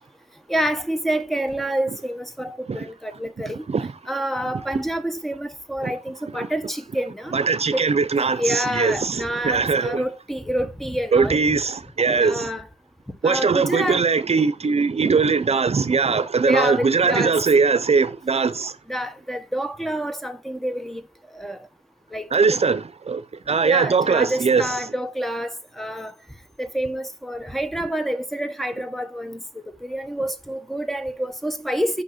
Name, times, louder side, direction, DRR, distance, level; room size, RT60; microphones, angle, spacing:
voice 1, 0.5-3.6 4.1-7.3 7.7-7.9 8.4-11.6 12.1-12.7 13.2-14.0 16.5-17.4 18.9-21.0 21.3-21.6 22.1-22.3 23.6-26.1 26.6-32.0, equal, ahead, 1.1 m, -27 dB
voice 2, 7.3-10.0 11.1-12.5 13.2-18.8 22.3-24.7, right 5 dB, 60° right, 0.6 m, -21 dB
6.4 x 5.6 x 5.6 m
wide cardioid pair, 55°, 12 cm